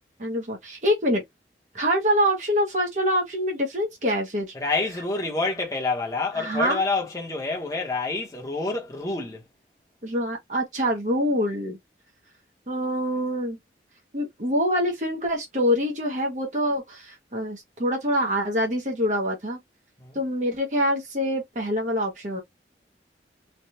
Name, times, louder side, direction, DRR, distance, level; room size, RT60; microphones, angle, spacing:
voice 1, 0.2-1.2 1.7-4.5 6.3-6.8 10.0-11.8 12.7-13.6 14.1-19.6 20.1-22.4, equal, 45° right, 0.9 m, -25 dB
voice 2, 4.5-9.4 20.0-20.2, left 3 dB, 20° left, 1.0 m, -28 dB
3.3 x 2.3 x 2.8 m
head